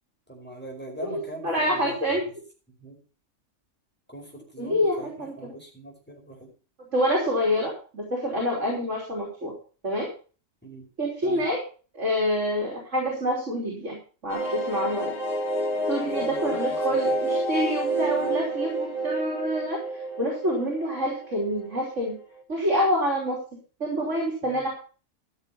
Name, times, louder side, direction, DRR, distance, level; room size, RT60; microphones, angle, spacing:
voice 1, 0.3-2.0 2.8-3.0 4.1-6.5 10.6-10.8 11.2-11.5 16.0-16.8 17.1-17.2 24.4-24.6, right 1 dB, 10° left, -1 dB, 4.9 m, -41 dB
voice 2, 1.4-2.2 4.6-5.5 6.9-9.5 9.8-10.1 11.0-11.6 11.9-14.0 14.2-15.1 15.9-19.8 20.2-22.1 22.5-23.4 23.8-24.7, equal, 75° right, -2 dB, 3.9 m, -27 dB
sound 1, 14.3-21.8 22.1-22.2 22.4-22.5, right 1 dB, 50° left, 2.4 m, -29 dB
14.5 x 6.8 x 5.8 m, 0.37 s
omnidirectional pair, 1.3 m